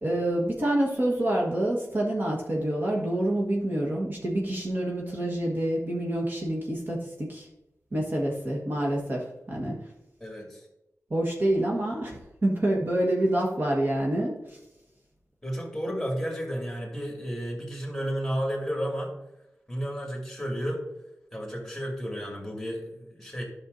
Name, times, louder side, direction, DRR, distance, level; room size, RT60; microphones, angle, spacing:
voice 1, 0.0-7.5 7.9-9.8 11.1-14.3, right 1 dB, 40° right, -2 dB, 1.4 m, -27 dB
voice 2, 10.2-10.7 15.4-19.1 19.7-20.8 21.3-23.4, equal, 5° left, 0 dB, 2.3 m, -32 dB
12.0 x 6.3 x 2.7 m, 0.89 s
wide cardioid pair, 100°, 5 cm